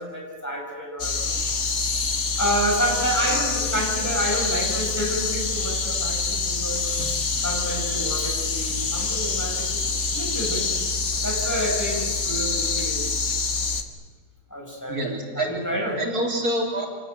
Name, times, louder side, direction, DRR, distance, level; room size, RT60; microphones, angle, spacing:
voice 1, 0.0-1.3 2.4-6.9 7.4-10.7 11.2-13.3 14.5-15.1 15.4-16.0, equal, 10° left, -1 dB, 6.0 m, -29 dB
sound 1, 1.0-13.8, left 4 dB, 50° left, 1.8 m, -26 dB
voice 2, 6.9-7.7 8.7-8.9 14.9-15.6 16.0-16.9, right 1 dB, 70° right, 0 dB, 4.2 m, -29 dB
27.0 x 19.0 x 9.2 m, 1.5 s
omnidirectional pair, 1.7 m